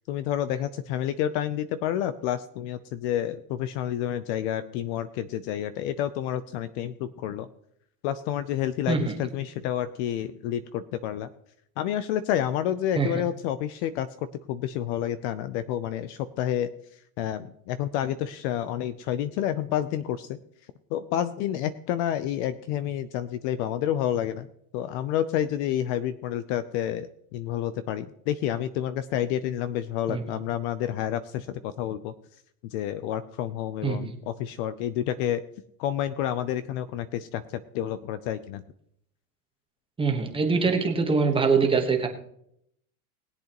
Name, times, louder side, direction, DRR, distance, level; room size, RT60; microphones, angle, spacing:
voice 1, 0.1-7.5 8.0-11.3 11.8-14.1 14.5-16.7 17.2-20.4 20.9-24.5 24.7-32.1 32.7-35.4 35.8-38.6, left 11 dB, 45° left, 13 dB, 0.6 m, -29 dB
voice 2, 30.1-30.4 33.8-34.2 40.0-42.1, right 4 dB, 10° right, 3 dB, 1.2 m, -24 dB
20.5 x 8.0 x 3.0 m, 0.72 s
supercardioid pair, 145°, 48 cm